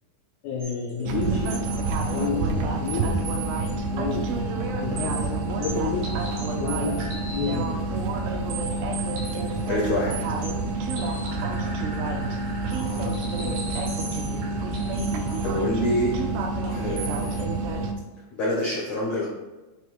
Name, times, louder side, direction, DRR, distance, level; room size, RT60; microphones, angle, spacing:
voice 1, 0.4-1.6 2.1-3.3 3.9-4.3 4.8-6.2 6.6-7.0 7.3-7.7 11.6-11.9 13.0-13.7, left 4 dB, 85° left, -3 dB, 1.7 m, -30 dB
sound 1, 0.6-2.5 2.9-3.8 4.1-4.2 4.6-4.7 5.0-7.6 8.0-15.6 16.6-17.5, right 4 dB, 60° right, 2.4 m, -39 dB
sound 2, 1.1-17.9, right 3 dB, 80° right, 2.5 m, -28 dB
voice 2, 9.7-10.2 15.4-16.1 16.7-17.4 18.3-19.3, left 1 dB, 70° left, -4 dB, 1.6 m, -26 dB
6.6 x 3.2 x 4.6 m, 1.1 s
omnidirectional pair, 4.4 m